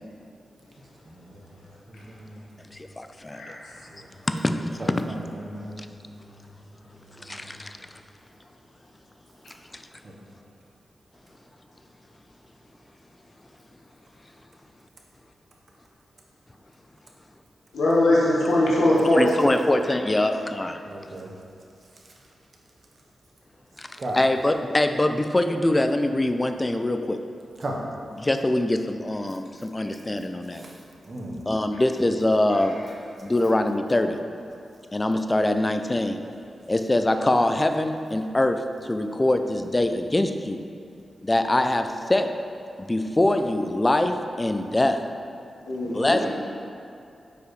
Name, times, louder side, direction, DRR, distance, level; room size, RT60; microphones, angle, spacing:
voice 1, 1.9-2.3 4.8-5.7 10.0-10.1 20.8-21.3 24.0-24.2 27.6-27.8 30.6-30.7 31.1-31.4, right 1 dB, 50° right, -1 dB, 1.0 m, -35 dB
voice 2, 2.7-3.4 4.3-5.1 5.8-5.9 7.2-7.8 9.7-9.8 19.0-20.8 23.8-23.9 24.1-27.2 28.2-30.6 31.5-32.8 33.2-34.2 34.9-36.2 36.7-40.6 41.2-42.3 42.8-45.0 45.9-46.3, left 1 dB, 25° left, 7 dB, 0.4 m, -23 dB
voice 3, 3.4-3.8 17.7-19.2 45.7-46.2, left 1 dB, 90° left, -5 dB, 1.2 m, -21 dB
6.8 x 4.8 x 3.2 m, 2.5 s
cardioid pair, 60°, 0 cm